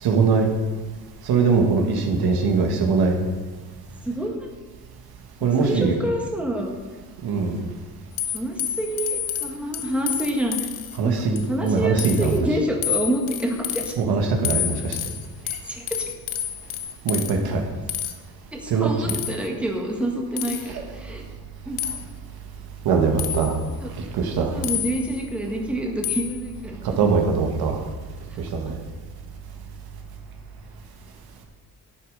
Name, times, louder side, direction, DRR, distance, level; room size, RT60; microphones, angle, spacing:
voice 1, 0.0-0.5 1.2-3.2 5.4-5.9 7.2-7.6 11.0-12.4 14.0-15.0 17.0-17.6 18.7-19.2 20.7-20.8 22.8-23.5 24.1-24.5 26.8-27.8 28.4-28.7, right 4 dB, 65° right, 2 dB, 1.8 m, -21 dB
voice 2, 4.0-4.5 5.4-6.7 8.3-10.7 11.0-13.9 15.4-16.0 18.5-21.2 21.6-21.8 23.8-23.9 24.3-27.1 28.3-28.4 28.7-28.8, right 1 dB, 5° right, 0 dB, 1.6 m, -28 dB
sound 1, 8.2-11.0 11.3-11.7 12.0-12.4 12.8-13.9 14.4-17.3 17.9-18.1 19.1-19.5 20.4-20.7 21.8-22.0 23.2-23.6 24.6-25.2 26.0-26.4, left 10 dB, 80° left, 1.2 m, -29 dB
11.0 x 8.3 x 5.4 m, 1.3 s
cardioid pair, 130°, 39 cm